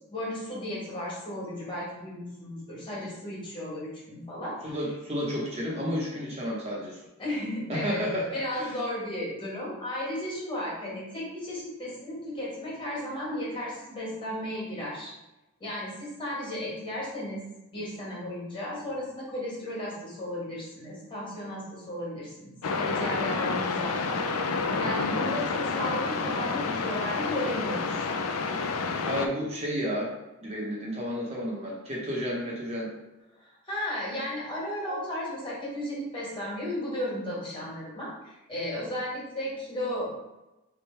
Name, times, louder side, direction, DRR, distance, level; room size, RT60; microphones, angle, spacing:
voice 1, 0.0-4.8 7.2-8.0 8.3-15.1 15.6-17.4 17.7-28.1 33.4-40.1, left 1 dB, 20° left, -6 dB, 1.6 m, -34 dB
voice 2, 4.6-7.0 7.7-8.8 29.0-30.1 30.4-32.9, equal, 30° right, -4 dB, 0.7 m, -31 dB
sound 1, 22.6-29.3, left 4 dB, 75° left, 0.4 m, -29 dB
3.5 x 3.2 x 4.4 m, 1.0 s
head